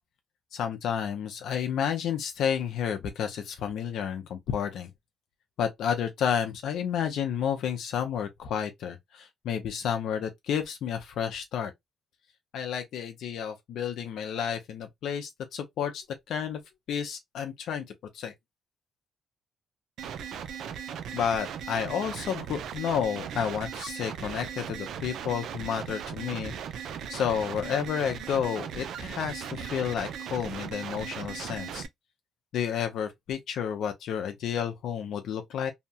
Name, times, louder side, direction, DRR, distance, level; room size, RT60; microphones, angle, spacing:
voice 1, 0.5-4.9 5.6-11.7 12.5-16.6 16.9-17.8 18.1-18.3 21.1-26.5 27.1-31.8 32.5-35.7, left 8 dB, 75° left, 0.5 m, -31 dB
sound 1, 20.0-31.9, right 8 dB, 75° right, 0.4 m, -38 dB
2.7 x 2.2 x 2.6 m
cardioid pair, 90°, 0 cm